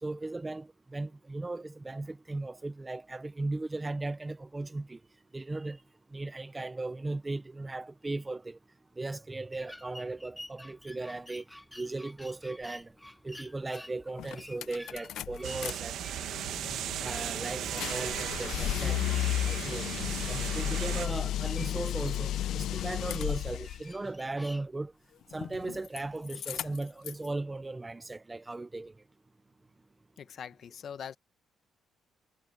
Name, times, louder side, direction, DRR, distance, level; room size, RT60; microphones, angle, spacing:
voice 1, 0.0-5.0 5.3-5.8 6.1-8.6 9.0-11.4 11.8-12.9 13.2-16.0 17.0-19.0 19.4-19.9 20.2-24.9 25.3-28.9, right 2 dB, 10° right, 0.6 m, -37 dB
Ruedas oxidadas, 9.5-24.7, left 1 dB, 5° left, 7.8 m, -51 dB
sound 1, 13.7-13.8 14.2-15.7 16.1-23.8 25.3-26.0 26.3-27.3, left 12 dB, 65° left, 0.6 m, -34 dB
sound 2, 15.4-21.1, right 11 dB, 65° right, 1.3 m, -36 dB
voice 2, 30.2-31.2, left 8 dB, 45° left, 1.1 m, -42 dB
cardioid pair, 170°, 0 cm